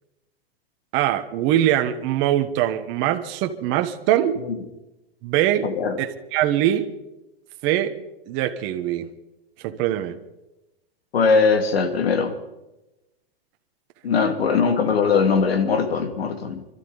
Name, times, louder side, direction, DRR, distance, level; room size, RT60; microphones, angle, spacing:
voice 1, 0.9-4.4 5.2-5.7 6.0-6.9 7.6-7.9 8.3-9.1 9.6-10.2, right 12 dB, 40° right, 1.2 m, -22 dB
voice 2, 5.6-6.0 11.1-12.4 14.0-16.7, left 5 dB, 90° left, 2.2 m, -20 dB
26.0 x 13.0 x 4.0 m
hypercardioid pair, 130°, 30 cm